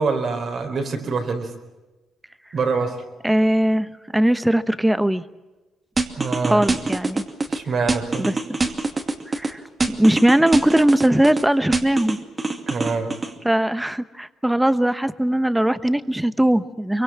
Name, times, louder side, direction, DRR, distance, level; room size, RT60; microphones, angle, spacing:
voice 1, 0.0-1.5 2.5-3.0 6.2-6.6 7.5-8.3 12.7-13.1, right 4 dB, 50° right, 5 dB, 4.3 m, -25 dB
voice 2, 3.2-3.9 4.1-5.2 6.4-7.2 8.2-8.3 9.3-9.6 9.9-12.2 13.4-17.0, right 1 dB, 5° right, 13 dB, 1.1 m, -19 dB
sound 1, 6.0-7.6 7.9-9.5 9.8-11.4 11.7-13.3, right 3 dB, 25° right, 2.4 m, -24 dB
24.0 x 23.5 x 7.5 m, 1.1 s
cardioid pair, 90°, 0 cm